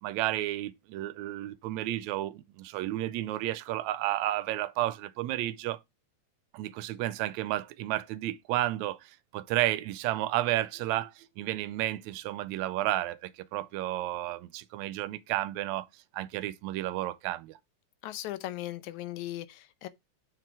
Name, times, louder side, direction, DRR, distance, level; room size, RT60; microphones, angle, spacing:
voice 1, 0.0-5.8 6.5-15.9 16.1-17.6, right 15 dB, 80° right, 1.8 m, -32 dB
voice 2, 18.0-19.9, left 15 dB, 80° left, 2.1 m, -38 dB
7.8 x 4.8 x 4.6 m
omnidirectional pair, 3.4 m